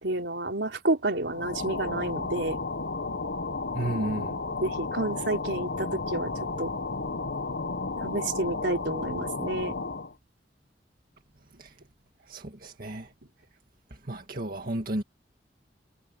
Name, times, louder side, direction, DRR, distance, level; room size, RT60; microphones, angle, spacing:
voice 1, 0.0-2.6 4.6-6.3 6.6-6.7 8.0-9.7, right 2 dB, 80° right, 4.1 m, -30 dB
sound 1, 1.3-10.1, left 3 dB, 75° left, 1.3 m, -33 dB
voice 2, 3.7-4.4 11.6-11.7 12.3-13.1 14.0-15.0, right 1 dB, 55° right, 2.1 m, -32 dB
head